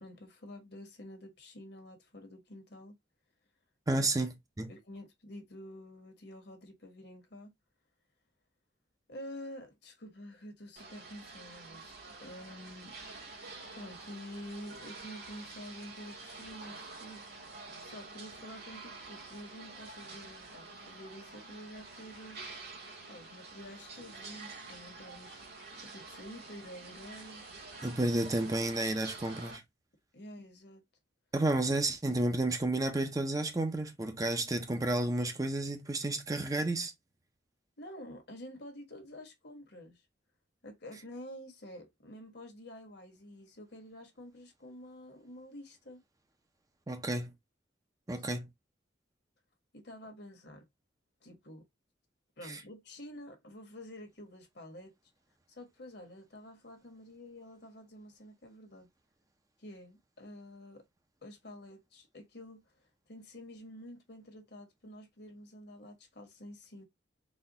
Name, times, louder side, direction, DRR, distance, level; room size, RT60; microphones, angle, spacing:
voice 1, 0.0-2.9 3.9-4.1 4.7-7.5 9.1-12.9 13.7-17.3 17.8-22.4 23.1-27.5 30.1-30.8 37.8-40.0 40.6-46.0 48.1-48.2 49.7-50.6 51.2-51.6 52.4-54.9 55.5-58.9 59.6-60.8 61.2-62.6 63.1-66.8, left 1 dB, 60° left, 1.3 m, -49 dB
voice 2, 3.9-4.7 27.8-29.6 31.3-36.9 46.9-47.3 48.1-48.5 52.5-52.6, right 2 dB, 20° right, 0.5 m, -31 dB
washington naturalhistory bathroom, 10.8-29.6, right 3 dB, 60° right, 1.8 m, -48 dB
4.2 x 2.3 x 3.9 m
head